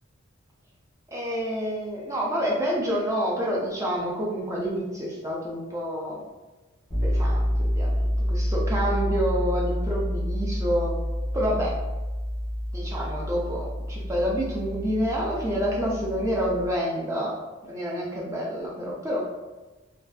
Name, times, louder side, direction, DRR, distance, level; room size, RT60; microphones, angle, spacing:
voice 1, 1.1-6.2 7.0-11.0 11.3-11.7 12.7-17.4 17.6-19.2, equal, 15° right, -4 dB, 0.4 m, -28 dB
sound 1, 6.9-16.7, equal, 5° left, 0.9 m, -28 dB
2.5 x 2.3 x 2.2 m, 1.1 s
head